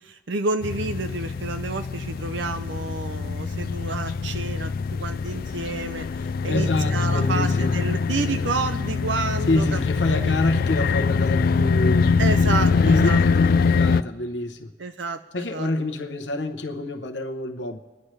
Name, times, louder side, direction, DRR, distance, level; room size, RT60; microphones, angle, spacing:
voice 1, 0.0-6.1 6.4-9.8 10.1-10.3 12.2-13.2 14.8-15.7, right 3 dB, 80° right, 8 dB, 0.7 m, -30 dB
sound 1, 0.6-14.0, left 5 dB, 55° left, 0.3 m, -23 dB
voice 2, 6.2-7.7 9.5-12.1 12.8-14.7 15.3-17.8, left 2 dB, 75° left, 6 dB, 0.9 m, -27 dB
30.0 x 10.5 x 3.3 m, 1.3 s
head